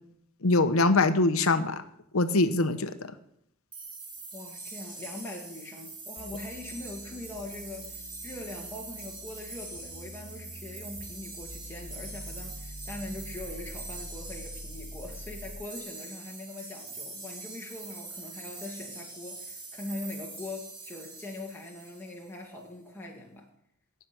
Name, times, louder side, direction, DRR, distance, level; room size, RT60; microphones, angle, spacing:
voice 1, 0.4-1.8 2.1-3.0, left 2 dB, 80° left, 11 dB, 1.0 m, -23 dB
sound 1, 3.7-22.4, right 3 dB, 25° right, 3.2 m, -44 dB
voice 2, 4.3-23.5, left 2 dB, 10° left, -2 dB, 2.1 m, -42 dB
sound 2, 6.2-15.8, left 1 dB, 50° left, 1.1 m, -46 dB
18.0 x 7.0 x 6.0 m, 0.72 s
head